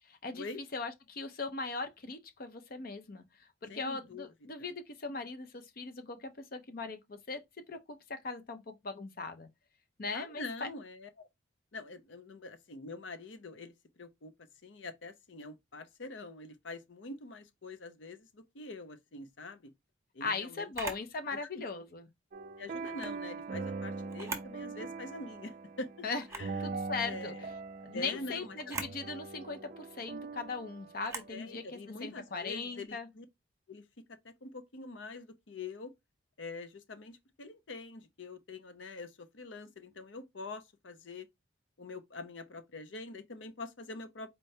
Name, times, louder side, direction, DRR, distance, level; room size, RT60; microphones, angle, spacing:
voice 1, 0.1-0.5 0.7-3.2 3.6-7.4 7.7-9.5 10.0-10.7 20.2-22.1 26.0-26.2 26.6-27.3 27.8-33.1, left 4 dB, 50° left, 0.6 m, -39 dB
voice 2, 3.7-4.3 4.6-4.7 10.1-11.3 11.7-14.3 14.6-19.7 20.1-20.7 21.3-21.6 22.6-26.0 26.3-26.8 27.0-27.5 27.9-28.6 31.3-33.3 33.7-33.8 34.2-35.9 36.4-41.3 41.8-44.3, left 3 dB, 80° left, 0.8 m, -45 dB
Camera, 20.7-21.1 22.8-23.2 24.1-24.6 25.0-25.1 26.2-26.6 28.6-29.0 31.0-31.4, right 3 dB, 15° right, 0.8 m, -40 dB
sound 1, 22.3-31.8, right 4 dB, 45° right, 0.4 m, -42 dB
4.4 x 3.2 x 2.7 m
head